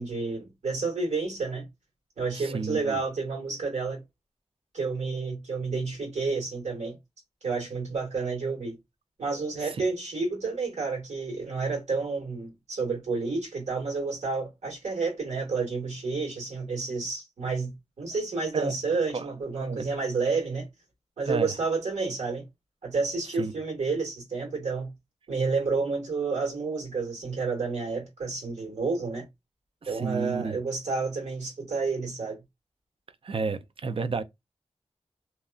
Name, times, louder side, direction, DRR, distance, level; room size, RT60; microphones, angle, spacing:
voice 1, 0.0-1.6 2.2-4.0 4.7-7.0 7.4-8.7 9.2-17.7 18.0-20.7 21.2-22.4 22.8-24.9 25.3-29.2 29.9-32.4, right 4 dB, 85° right, 1.8 m, -30 dB
voice 2, 2.3-3.0 9.6-9.8 18.5-18.8 19.1-19.3 19.6-19.9 21.2-21.5 23.4-23.5 29.8-30.6 33.2-34.2, right 4 dB, 55° right, 0.4 m, -31 dB
2.8 x 2.4 x 2.4 m
cardioid pair, 55°, 11 cm